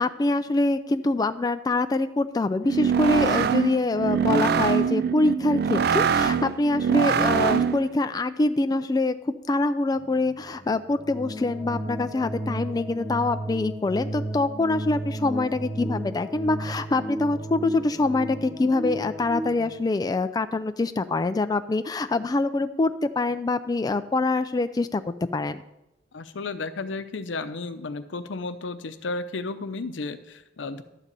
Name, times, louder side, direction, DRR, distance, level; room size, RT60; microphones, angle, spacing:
voice 1, 0.0-25.6, left 2 dB, 20° left, 10 dB, 0.3 m, -25 dB
sound 1, 2.6-7.9, right 6 dB, 60° right, 0.4 m, -23 dB
sound 2, 9.9-19.7, right 1 dB, 15° right, 1.3 m, -34 dB
voice 2, 26.1-30.8, left 3 dB, 80° left, 10 dB, 0.6 m, -33 dB
11.5 x 4.0 x 7.4 m, 0.90 s
head